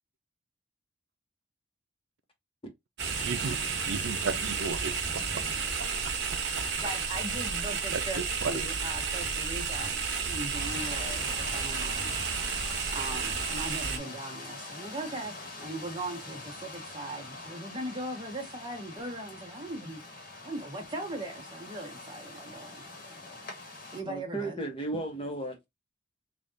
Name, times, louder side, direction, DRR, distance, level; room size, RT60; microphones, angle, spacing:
sound 1, 3.0-14.0, right 5 dB, 60° right, 1.0 m, -32 dB
voice 1, 3.2-3.6 3.9-5.4 7.9-8.5, right 4 dB, 80° right, 0.5 m, -34 dB
voice 2, 6.6-12.1 12.9-20.0 20.4-22.8 23.3-23.4 23.9-24.6, right 1 dB, 25° right, 1.0 m, -39 dB
sound 2, 10.5-24.0, left 2 dB, 45° left, 1.2 m, -44 dB
voice 3, 24.0-25.6, right 2 dB, 30° left, 0.9 m, -34 dB
3.3 x 2.4 x 3.8 m
head